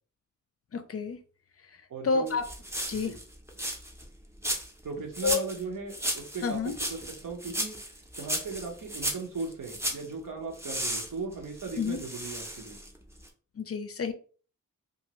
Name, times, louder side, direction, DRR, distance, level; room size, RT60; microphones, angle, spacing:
voice 1, 0.7-1.2 2.0-2.4 2.9-3.1 5.2-5.4 6.4-6.7 11.8-12.0 13.6-14.1, left 5 dB, 45° left, 8 dB, 0.4 m, -29 dB
voice 2, 1.9-2.3 2.9-3.2 4.8-7.7 8.1-12.8, right 4 dB, 80° right, 2 dB, 1.0 m, -38 dB
sound 1, 2.3-4.0 4.4-4.8 5.1-5.6 5.9-10.1 10.6-13.0 13.2-13.3, right 1 dB, 10° right, 0.6 m, -35 dB
2.6 x 2.5 x 3.0 m, 0.40 s
wide cardioid pair, 95°, 32 cm